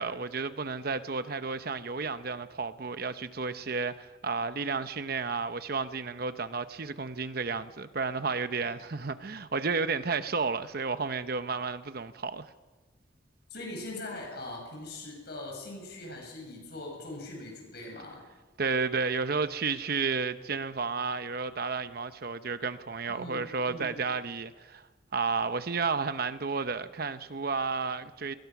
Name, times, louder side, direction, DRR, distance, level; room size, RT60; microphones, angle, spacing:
voice 1, 0.0-12.5 18.6-24.8 25.1-28.3, right 4 dB, 55° right, 0.8 m, -32 dB
voice 2, 13.5-18.2 23.1-23.9, left 2 dB, 60° left, 7.0 m, -41 dB
26.5 x 21.0 x 6.0 m
head